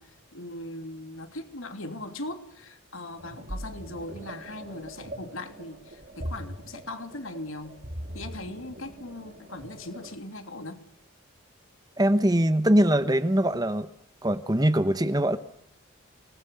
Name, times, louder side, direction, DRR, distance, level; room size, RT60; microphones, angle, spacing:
voice 1, 0.0-7.8 8.1-10.8, left 2 dB, 70° left, 7 dB, 3.0 m, -39 dB
sound 1, 3.2-10.2, equal, 45° right, 2.5 m, -41 dB
voice 2, 12.0-13.9 14.2-15.4, right 1 dB, 15° right, 12 dB, 1.0 m, -22 dB
26.0 x 20.0 x 7.1 m, 0.67 s
head